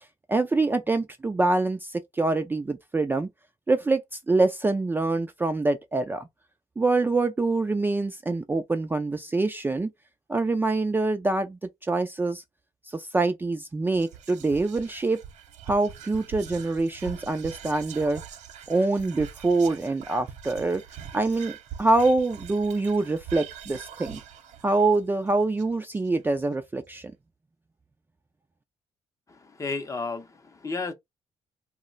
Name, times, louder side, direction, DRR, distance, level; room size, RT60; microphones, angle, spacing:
voice 1, 0.3-3.3 3.7-6.3 6.8-9.9 10.3-12.4 12.9-15.2 15.7-18.2 18.7-20.8 21.1-21.5 21.8-24.2 24.6-27.1, right 3 dB, 15° right, 0.3 m, -25 dB
Whispering, 13.9-26.4, right 8 dB, 75° right, 0.5 m, -43 dB
voice 2, 29.3-30.9, left 3 dB, 25° left, 0.6 m, -33 dB
2.3 x 2.1 x 3.7 m
cardioid pair, 90°, 12 cm